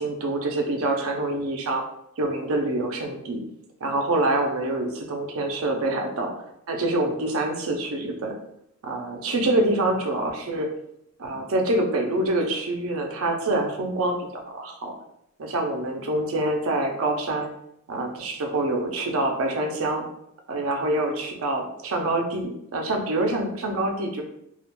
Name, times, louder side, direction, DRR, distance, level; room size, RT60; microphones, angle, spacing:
voice 1, 0.0-1.8 2.2-3.4 3.8-6.3 6.7-8.4 8.8-10.7 11.2-14.9 15.4-17.5 17.9-20.1 20.5-24.2, right 2 dB, 65° right, 2 dB, 0.5 m, -26 dB
2.3 x 2.1 x 2.9 m, 0.76 s
head